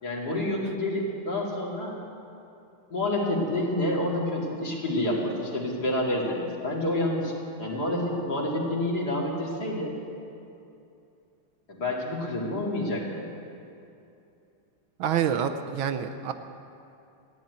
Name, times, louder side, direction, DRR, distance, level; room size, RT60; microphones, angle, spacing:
voice 1, 0.0-2.0 2.9-9.9 11.7-13.3, left 1 dB, 45° left, -3 dB, 2.9 m, -28 dB
voice 2, 15.0-16.3, right 8 dB, 75° right, 8 dB, 1.4 m, -27 dB
15.0 x 10.5 x 9.3 m, 2.7 s
omnidirectional pair, 2.4 m